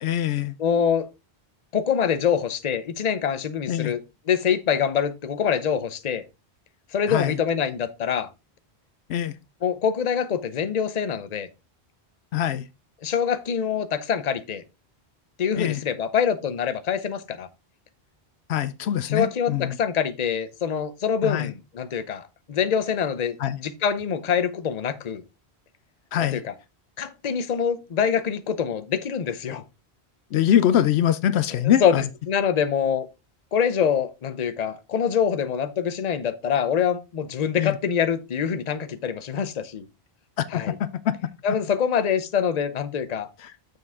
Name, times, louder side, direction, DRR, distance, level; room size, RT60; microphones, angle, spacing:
voice 1, 0.0-0.6 3.7-3.9 7.1-7.4 9.1-9.4 12.3-12.6 15.6-15.8 18.5-19.8 21.2-21.5 23.4-23.6 26.1-26.4 30.3-32.0 37.6-37.8 40.4-41.2 43.4-43.5, left 10 dB, 80° left, 0.8 m, -23 dB
voice 2, 0.6-1.1 1.7-6.2 6.9-8.3 9.6-11.5 13.0-14.6 15.4-17.5 19.1-25.2 26.2-26.5 27.0-29.6 31.5-33.1 33.5-39.9 40.5-40.7 41.4-43.3, left 7 dB, 45° left, 0.8 m, -25 dB
6.7 x 6.7 x 3.6 m
omnidirectional pair, 1.1 m